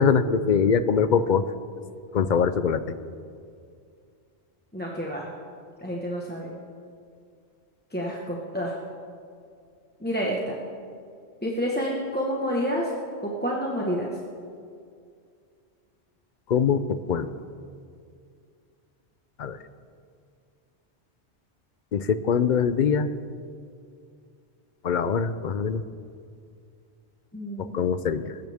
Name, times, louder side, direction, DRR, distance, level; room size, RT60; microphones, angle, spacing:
voice 1, 0.0-1.4 2.1-2.9 16.5-17.3 19.4-19.6 21.9-23.1 24.8-25.8 27.6-28.4, left 6 dB, 50° left, 12 dB, 0.7 m, -23 dB
voice 2, 4.7-5.3 5.8-6.5 7.9-8.7 10.0-10.6 11.4-12.9 13.2-14.1 27.3-27.9, equal, 10° left, -3 dB, 1.3 m, -29 dB
22.5 x 13.0 x 3.6 m, 2.3 s
omnidirectional pair, 1.1 m